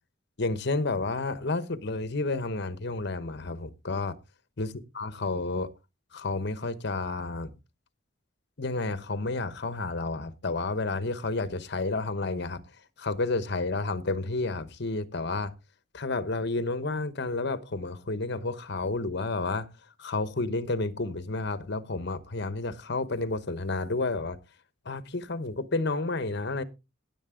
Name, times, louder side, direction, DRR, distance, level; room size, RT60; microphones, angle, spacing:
voice 1, 0.4-4.2 4.6-5.7 6.1-7.5 8.6-12.6 13.0-15.5 15.9-19.7 20.0-24.4 24.8-26.6, left 3 dB, 60° left, 1.1 m, -31 dB
16.0 x 7.6 x 3.8 m
head